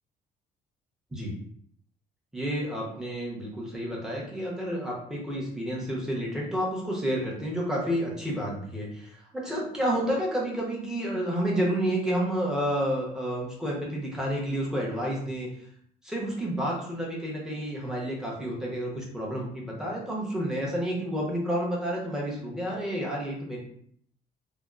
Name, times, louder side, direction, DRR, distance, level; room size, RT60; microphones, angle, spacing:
voice 1, 2.3-15.5 16.0-23.6, equal, 5° right, -4 dB, 0.8 m, -30 dB
2.8 x 2.1 x 2.4 m, 0.65 s
cardioid pair, 110°, 17 cm